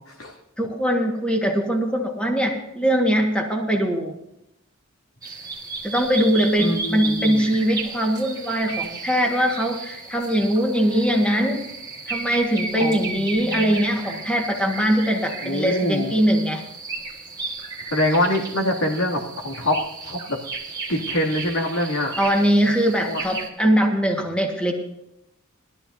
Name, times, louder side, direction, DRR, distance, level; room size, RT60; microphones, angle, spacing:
voice 1, 0.6-4.1 5.8-11.6 12.1-16.6 22.2-24.7, equal, 5° left, 1 dB, 1.6 m, -21 dB
sound 1, 5.2-23.5, right 4 dB, 20° right, 1.8 m, -34 dB
voice 2, 6.6-7.5 12.7-13.7 15.4-16.1 17.9-19.8 20.0-20.4 20.9-22.1 23.1-23.2, left 1 dB, 90° left, 0 dB, 2.6 m, -25 dB
19.0 x 13.0 x 2.7 m, 0.85 s
head